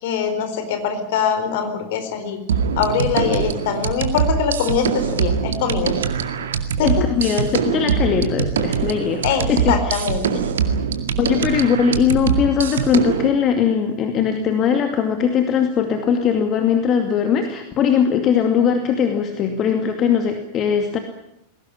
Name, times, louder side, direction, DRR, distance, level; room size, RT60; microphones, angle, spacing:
voice 1, 0.0-2.4 2.8-5.9 6.8-6.9 9.2-10.2, left 7 dB, 50° left, 8 dB, 4.3 m, -23 dB
sound 1, 2.5-13.3, right 7 dB, 65° right, 2.1 m, -23 dB
voice 2, 6.8-10.0 11.2-21.0, left 7 dB, 30° left, 6 dB, 2.4 m, -20 dB
21.0 x 18.0 x 10.0 m, 0.79 s
figure-of-eight pair, 90°, 0 cm